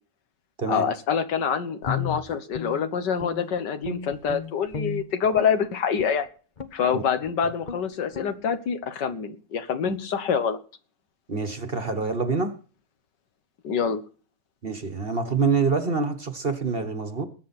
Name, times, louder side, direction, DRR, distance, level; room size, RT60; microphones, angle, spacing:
voice 1, 0.7-6.3 6.7-10.6 13.6-14.0, left 7 dB, 75° left, 10 dB, 1.8 m, -26 dB
Guitar, 1.8-3.5 3.8-5.6 6.0-6.2 6.6-6.9 7.2-7.4 7.6-7.8 8.1-8.3, left 6 dB, 30° left, 1.1 m, -34 dB
voice 2, 11.3-12.5 14.6-17.3, right 4 dB, 35° right, 8 dB, 1.4 m, -26 dB
20.5 x 8.9 x 4.3 m, 0.38 s
omnidirectional pair, 1.9 m